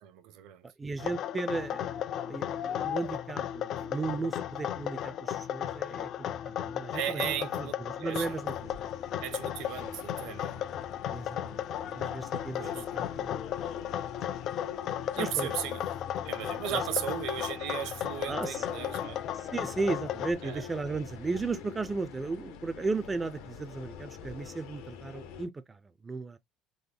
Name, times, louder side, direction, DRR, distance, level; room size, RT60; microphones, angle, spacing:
voice 1, 0.0-0.6 6.9-8.4 9.2-10.6 12.6-12.8 15.2-15.8 16.2-19.3 20.4-20.6, right 10 dB, 70° right, 0.8 m, -36 dB
voice 2, 0.8-8.5 11.1-13.5 15.2-15.5 18.3-18.7 19.4-26.4, right 3 dB, 15° right, 0.3 m, -35 dB
sound 1, 1.0-20.3, left 10 dB, 50° left, 0.4 m, -35 dB
sound 2, 8.1-25.5, left 7 dB, 80° left, 0.8 m, -46 dB
3.8 x 2.1 x 3.3 m
cardioid pair, 125°, 0 cm